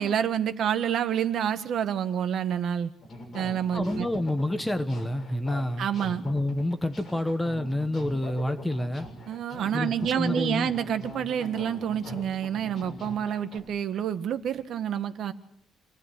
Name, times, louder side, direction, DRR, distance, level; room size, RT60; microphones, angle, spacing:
voice 1, 0.0-2.9 3.3-4.1 5.8-6.2 9.3-15.3, right 9 dB, 60° right, 9 dB, 1.7 m, -28 dB
sound 1, 3.0-13.6, left 2 dB, 30° left, 6.7 m, -42 dB
voice 2, 3.7-5.9 6.2-9.1 9.7-10.7, left 1 dB, 5° left, 9 dB, 1.2 m, -28 dB
28.0 x 17.5 x 9.6 m, 0.73 s
cardioid pair, 170°, 0 cm